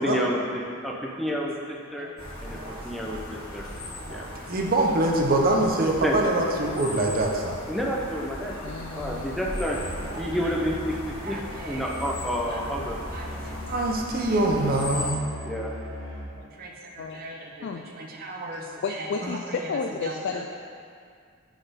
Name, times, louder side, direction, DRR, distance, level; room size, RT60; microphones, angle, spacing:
voice 1, 0.0-2.1 2.4-2.6 2.8-3.6 4.1-4.2 6.0-6.2 7.7-8.5 9.0-9.8 10.2-11.4 11.7-13.0 15.4-15.7, equal, ahead, -3 dB, 0.6 m, -29 dB
sound 1, 2.2-15.1, left 1 dB, 75° left, 1.5 m, -38 dB
voice 2, 2.5-3.2 3.7-7.6 10.1-10.3 11.2-11.9 12.5-12.7 13.1-13.4 13.7-15.2 16.6-17.7 17.9-18.7 19.0-19.4 20.0-20.1, right 2 dB, 45° right, 0 dB, 0.7 m, -27 dB
voice 3, 8.6-9.6 17.0-17.8 18.5-20.5, left 5 dB, 55° left, 4 dB, 0.3 m, -33 dB
Musical instrument, 9.7-16.5, left 1 dB, 65° right, 1.4 m, -39 dB
6.2 x 4.2 x 5.1 m, 2.2 s
head